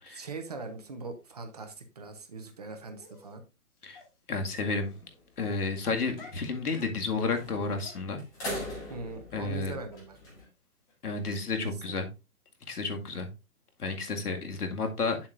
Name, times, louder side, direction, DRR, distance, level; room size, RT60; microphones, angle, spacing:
voice 1, 0.1-3.4 8.9-10.2 11.6-12.0, right 3 dB, 25° right, 6 dB, 0.8 m, -41 dB
Dog, 3.0-3.3 3.9-4.1 4.9-5.0 5.3-6.5 6.8-6.9 7.3-8.8 9.0-9.2 9.5-9.6 9.9-10.0 10.4-10.5 10.9-11.0 11.2-11.3, left 3 dB, 35° left, 2.6 m, -52 dB
voice 2, 4.3-4.9 5.4-8.2 9.3-9.7 11.0-12.1 12.7-13.3 13.8-15.3, left 4 dB, 90° left, 4 dB, 2.1 m, -31 dB
sound 1, 4.7-5.2 5.6-5.7 6.0-6.3 7.4-7.8 8.2-10.4, left 1 dB, 10° left, 1.2 m, -40 dB
8.8 x 7.1 x 2.5 m, 0.27 s
hypercardioid pair, 165°, 44 cm